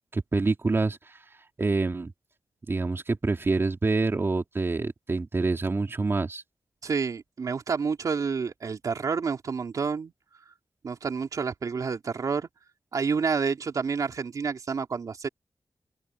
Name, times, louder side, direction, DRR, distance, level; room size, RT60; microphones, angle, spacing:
voice 1, 0.1-1.1 1.6-2.1 2.7-6.4, right 3 dB, 40° right, 3.5 m, -26 dB
voice 2, 6.8-10.1 10.8-12.5 12.9-15.3, right 5 dB, 70° right, 3.1 m, -29 dB
open air
cardioid pair, 75°, 6 cm